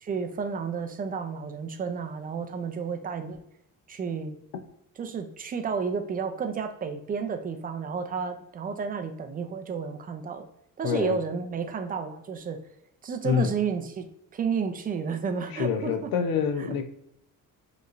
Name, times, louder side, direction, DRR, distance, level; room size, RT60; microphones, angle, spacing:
voice 1, 0.0-3.4 3.9-4.4 5.0-10.5 10.8-12.6 13.0-16.1 16.6-16.8, right 6 dB, 25° right, 6 dB, 0.4 m, -31 dB
voice 2, 10.8-11.2 13.2-13.5 15.5-16.8, left 7 dB, 80° left, 7 dB, 0.7 m, -26 dB
5.1 x 3.1 x 2.4 m, 0.77 s
cardioid pair, 170°, 35 cm